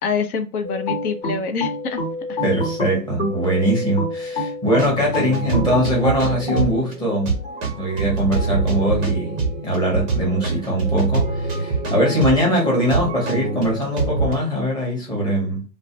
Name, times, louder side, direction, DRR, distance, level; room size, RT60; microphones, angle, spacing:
voice 1, 0.0-2.0 2.3-2.4, left 5 dB, 60° left, 0.7 m, -25 dB
sound 1, 0.6-13.6, left 3 dB, 80° left, 1.1 m, -36 dB
sound 2, 0.9-3.5 4.0-6.7, left 1 dB, 30° left, 1.1 m, -27 dB
voice 2, 2.4-7.4 7.8-15.6, equal, 10° left, 0.9 m, -21 dB
sound 3, 4.7-14.3, right 4 dB, 15° right, 0.5 m, -25 dB
2.4 x 2.1 x 2.7 m
hypercardioid pair, 125°, 49 cm